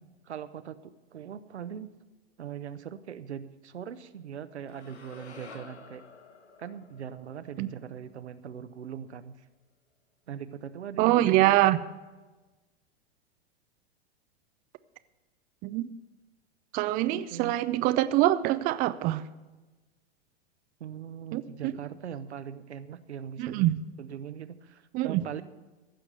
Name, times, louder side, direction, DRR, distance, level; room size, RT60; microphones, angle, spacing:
voice 1, 0.3-1.9 2.4-6.0 6.6-9.5 10.3-11.6 17.0-17.5 20.8-23.7 24.0-25.4, right 8 dB, 85° right, 11 dB, 0.9 m, -41 dB
sound 1, 4.7-8.9, left 3 dB, 90° left, 1.6 m, -51 dB
voice 2, 11.0-11.8 15.6-15.9 16.7-19.2 21.3-21.7 23.4-23.8 24.9-25.2, right 15 dB, 25° right, 13 dB, 0.4 m, -24 dB
15.5 x 6.0 x 8.1 m, 1.2 s
hypercardioid pair, 110°, 33 cm